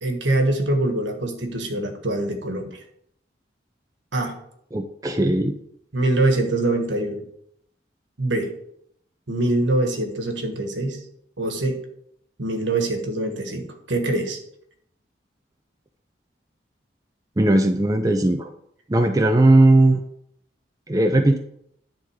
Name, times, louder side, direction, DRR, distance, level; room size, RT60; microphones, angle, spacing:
voice 1, 0.0-2.8 4.1-4.3 5.9-7.2 8.2-8.5 9.3-11.0 11.4-11.8 12.4-14.4, right 2 dB, 85° right, 4 dB, 1.6 m, -24 dB
voice 2, 4.7-5.6 17.4-18.5 18.9-20.0 20.9-21.4, right 1 dB, 20° right, 4 dB, 0.5 m, -18 dB
10.5 x 3.9 x 6.4 m, 0.73 s
head